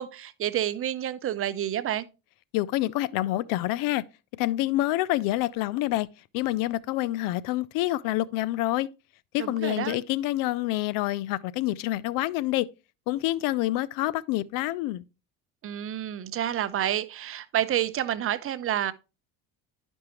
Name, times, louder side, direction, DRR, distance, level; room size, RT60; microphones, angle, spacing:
voice 1, 0.0-2.1 9.4-10.0 15.6-18.9, right 11 dB, 40° right, 0.7 m, -29 dB
voice 2, 2.5-4.0 4.4-6.1 6.3-8.9 9.3-12.7 13.1-15.0, left 16 dB, 80° left, 0.5 m, -27 dB
10.5 x 5.3 x 2.9 m
cardioid pair, 105°, 33 cm